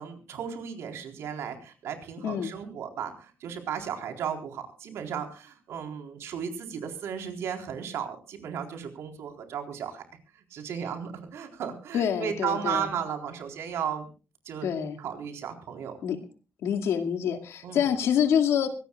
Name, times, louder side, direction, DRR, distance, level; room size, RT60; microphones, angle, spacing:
voice 1, 0.0-10.0 10.3-14.1 14.5-14.7 15.0-16.0 17.6-17.9, right 8 dB, 80° right, 4 dB, 4.1 m, -35 dB
voice 2, 2.2-2.6 11.9-12.9 14.6-15.0 16.0-16.2 16.6-18.7, left 8 dB, 85° left, 6 dB, 2.2 m, -26 dB
24.0 x 18.0 x 2.4 m, 0.34 s
cardioid pair, 155°, 5 cm